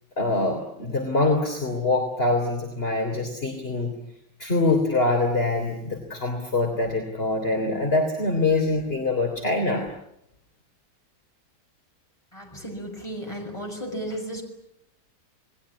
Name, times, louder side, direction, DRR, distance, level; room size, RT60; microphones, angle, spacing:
voice 1, 0.2-3.9 4.4-9.9, left 2 dB, 35° left, 2 dB, 3.7 m, -24 dB
voice 2, 12.3-14.4, right 1 dB, 15° left, 2 dB, 6.8 m, -34 dB
29.0 x 20.5 x 9.8 m, 0.77 s
omnidirectional pair, 1.8 m